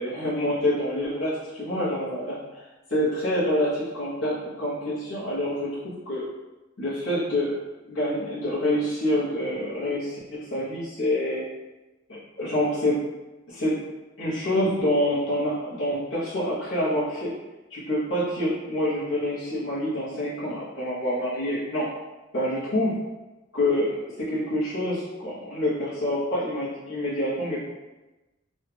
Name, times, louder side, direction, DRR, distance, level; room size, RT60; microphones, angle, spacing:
voice 1, 0.0-2.4 2.9-5.7 6.1-6.2 6.8-7.6 7.9-11.4 12.1-13.0 13.5-13.7 14.2-17.3 17.7-21.9 22.3-23.0 23.5-24.0 24.3-27.7, left 1 dB, 65° left, -10 dB, 1.0 m, -26 dB
3.1 x 2.4 x 3.3 m, 1.1 s
head